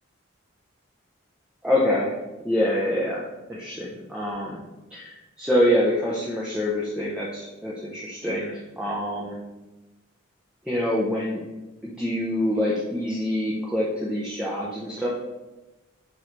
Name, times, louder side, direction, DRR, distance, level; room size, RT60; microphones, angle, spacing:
voice 1, 1.6-2.1 2.4-4.6 4.9-9.4 10.6-11.4 11.8-15.1, left 1 dB, 5° right, -7 dB, 0.8 m, -26 dB
10.5 x 3.6 x 3.3 m, 1.1 s
head